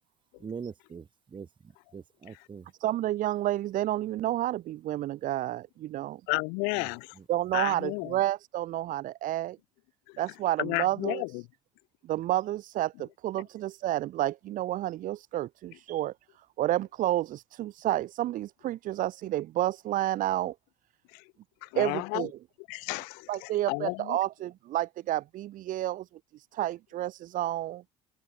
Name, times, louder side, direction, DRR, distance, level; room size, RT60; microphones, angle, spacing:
voice 1, 0.4-2.7 6.8-7.3, right 6 dB, 25° right, 2.3 m, -43 dB
voice 2, 2.8-6.2 7.3-9.6 10.2-11.2 12.0-20.6 21.8-22.4 23.3-27.8, right 14 dB, 50° right, 2.1 m, -30 dB
voice 3, 6.3-7.1 7.5-8.1 10.6-11.4 21.6-22.3 22.7-24.2, left 35 dB, 60° left, 0.9 m, -32 dB
figure-of-eight pair, 65°, 18 cm